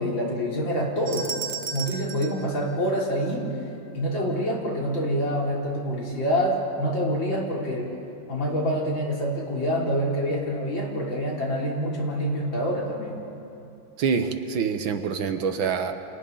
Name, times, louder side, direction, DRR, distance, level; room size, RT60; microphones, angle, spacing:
voice 1, 0.0-1.4 1.7-3.5 3.9-7.9 8.3-13.2, equal, 75° left, -3 dB, 4.3 m, -26 dB
sound 1, 1.1-3.5, right 5 dB, 35° right, 1.2 m, -35 dB
voice 2, 14.0-15.9, right 6 dB, 80° right, 7 dB, 2.0 m, -26 dB
29.5 x 27.0 x 4.0 m, 2.9 s
omnidirectional pair, 2.1 m